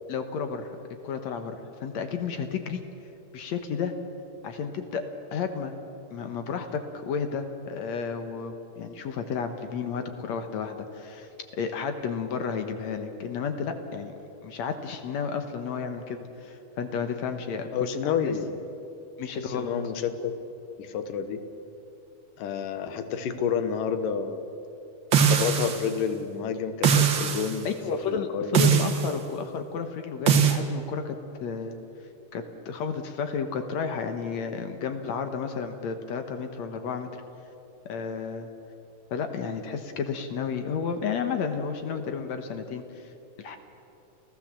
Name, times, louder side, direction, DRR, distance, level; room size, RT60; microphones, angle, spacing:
voice 1, 0.1-0.7 1.0-2.8 3.3-3.9 4.4-5.0 5.3-5.7 6.1-14.1 14.4-18.3 19.2-19.7 27.7-31.8 32.3-37.1 37.9-38.5 39.1-43.1 43.4-43.6, left 6 dB, 65° left, 7 dB, 2.2 m, -32 dB
voice 2, 17.7-18.6 19.3-20.4 20.8-21.5 22.4-24.4 25.2-27.7 27.9-28.8, left 7 dB, 85° left, 9 dB, 2.9 m, -30 dB
sound 1, 25.1-25.9 26.8-27.5 28.5-29.1 30.3-30.6, right 7 dB, 50° right, 1.7 m, -21 dB
28.5 x 15.5 x 7.6 m, 2.9 s
omnidirectional pair, 3.7 m